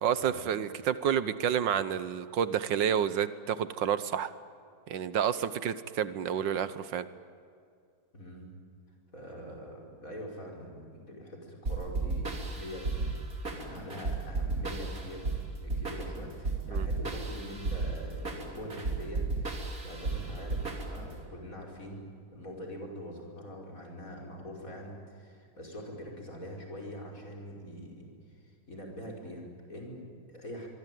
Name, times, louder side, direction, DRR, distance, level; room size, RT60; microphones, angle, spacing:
voice 1, 0.0-4.3 4.9-7.1 16.7-16.9, right 9 dB, 80° right, 14 dB, 1.6 m, -29 dB
voice 2, 8.1-8.5 9.1-30.7, equal, 45° left, 0 dB, 5.9 m, -44 dB
sound 1, 11.7-21.2, right 3 dB, 50° right, 3.8 m, -34 dB
24.5 x 24.0 x 9.3 m, 2.4 s
omnidirectional pair, 2.0 m